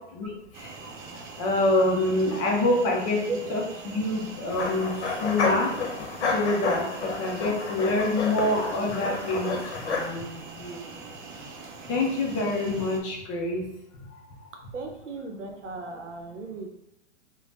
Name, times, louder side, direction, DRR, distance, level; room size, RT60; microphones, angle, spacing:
sound 1, 0.5-13.0, right 3 dB, 45° right, 0.5 m, -43 dB
voice 1, 1.4-4.9 5.2-5.7 6.3-9.5 9.9-10.7 11.9-13.6, left 2 dB, 30° left, -1 dB, 0.5 m, -26 dB
voice 2, 3.3-3.6 4.1-4.2 14.7-16.7, right 3 dB, 85° right, 3 dB, 0.7 m, -36 dB
sound 2, 4.5-10.1, left 4 dB, 65° left, 0.8 m, -30 dB
3.2 x 2.1 x 2.6 m, 0.83 s
hypercardioid pair, 130°, 36 cm